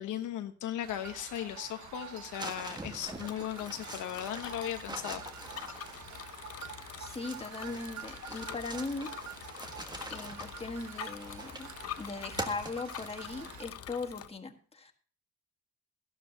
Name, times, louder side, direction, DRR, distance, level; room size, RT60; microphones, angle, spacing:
voice 1, 0.0-5.2, left 11 dB, 85° left, 7 dB, 1.1 m, -37 dB
sound 1, 0.8-13.6, right 10 dB, 65° right, 0.8 m, -48 dB
sound 2, 2.4-6.3 7.1-11.8 12.4-13.4, right 2 dB, 15° right, 1.6 m, -44 dB
Bicycle, 2.5-14.3, left 10 dB, 50° left, 0.8 m, -46 dB
voice 2, 7.0-9.1 10.1-11.7 12.0-14.9, left 3 dB, 20° left, 4 dB, 1.7 m, -39 dB
14.0 x 12.0 x 2.9 m, 0.41 s
cardioid pair, 90°, 30 cm